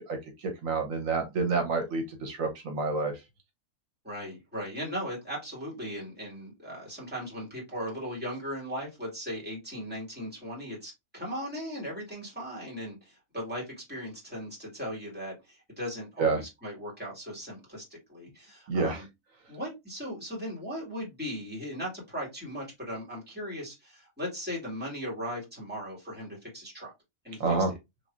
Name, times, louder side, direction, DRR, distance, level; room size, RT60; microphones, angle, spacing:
voice 1, 0.1-3.2 16.2-16.4 18.7-19.0 27.4-27.7, right 4 dB, 75° right, 5 dB, 1.2 m, -28 dB
voice 2, 4.0-19.0 19.5-26.9 27.2-27.7, equal, 5° right, -5 dB, 2.1 m, -38 dB
3.5 x 3.2 x 2.5 m, 0.21 s
omnidirectional pair, 1.4 m